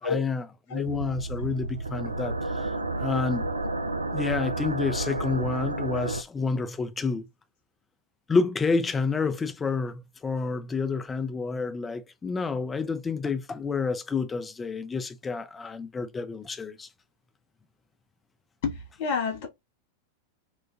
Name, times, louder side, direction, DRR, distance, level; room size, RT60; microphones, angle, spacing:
voice 1, 0.0-2.7 3.0-3.5 4.1-7.3 8.3-16.9, left 4 dB, 15° left, 0.4 m, -29 dB
sound 1, 0.9-6.2, right 2 dB, 80° right, 0.3 m, -31 dB
voice 2, 18.6-19.5, left 5 dB, 50° left, 1.0 m, -29 dB
3.0 x 2.2 x 2.3 m
figure-of-eight pair, 90°, 0 cm